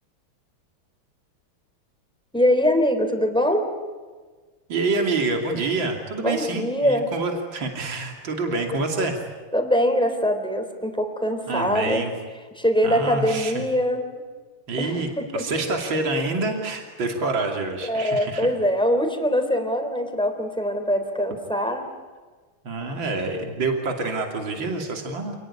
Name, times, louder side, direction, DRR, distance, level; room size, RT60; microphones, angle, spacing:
voice 1, 2.3-3.7 6.2-7.1 9.5-12.1 12.6-14.0 14.8-15.5 17.9-21.9, equal, ahead, 5 dB, 3.6 m, -23 dB
voice 2, 4.7-9.2 11.5-12.1 12.8-13.6 14.7-18.5 22.6-25.4, right 3 dB, 65° right, 2 dB, 3.5 m, -27 dB
28.0 x 20.0 x 10.0 m, 1.4 s
omnidirectional pair, 2.3 m